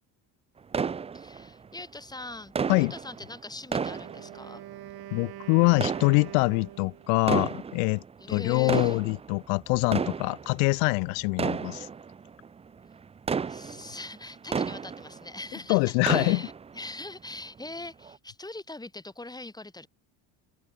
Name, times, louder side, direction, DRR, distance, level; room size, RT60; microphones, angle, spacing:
sound 1, 0.7-1.8 2.6-4.9 5.7-6.7 7.2-8.1 8.5-15.5 15.8-16.9 17.3-17.4 18.0-18.2, right 6 dB, 15° right, 0.4 m, -33 dB
voice 1, 1.1-4.6 8.2-9.0 13.5-19.9, left 2 dB, 10° left, 1.6 m, -42 dB
Wind instrument woodwind instrument, 3.7-7.2, right 14 dB, 60° right, 2.7 m, -44 dB
voice 2, 5.1-11.9 13.8-13.9 15.7-16.4, left 40 dB or more, 90° left, 0.6 m, -24 dB
cardioid pair, 100°, 43 cm